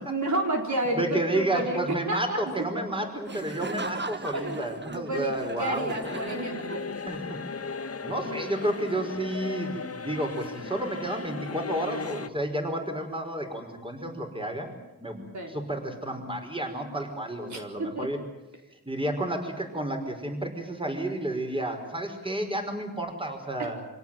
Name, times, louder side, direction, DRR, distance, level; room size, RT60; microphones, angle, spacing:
voice 1, 0.0-1.8 2.1-2.8 4.3-6.8 15.3-15.5 17.4-18.1 23.6-23.7, right 1 dB, 50° right, 1 dB, 4.4 m, -31 dB
voice 2, 0.9-5.9 7.1-7.4 8.0-14.7 15.0-15.2 15.5-18.2 18.9-23.8, right 1 dB, 15° right, 5 dB, 5.2 m, -31 dB
Laughter, 3.3-7.2, right 3 dB, 30° right, 1.4 m, -38 dB
sound 1, 6.0-12.3, left 5 dB, 40° left, 1.3 m, -37 dB
26.0 x 17.5 x 9.1 m, 1.0 s
wide cardioid pair, 75°, 36 cm